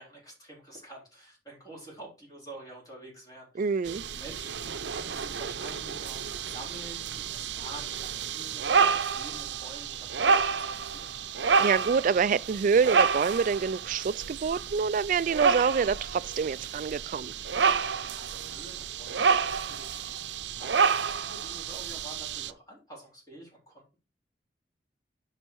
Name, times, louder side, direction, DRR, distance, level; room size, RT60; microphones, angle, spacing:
voice 1, 0.0-11.2 18.2-24.0, right 1 dB, 20° left, 3.7 m, -48 dB
voice 2, 3.6-4.0 11.6-17.3, right 5 dB, 50° right, 0.3 m, -26 dB
sound 1, 3.8-22.5, right 5 dB, 80° right, 0.7 m, -29 dB
9.9 x 4.1 x 4.7 m
head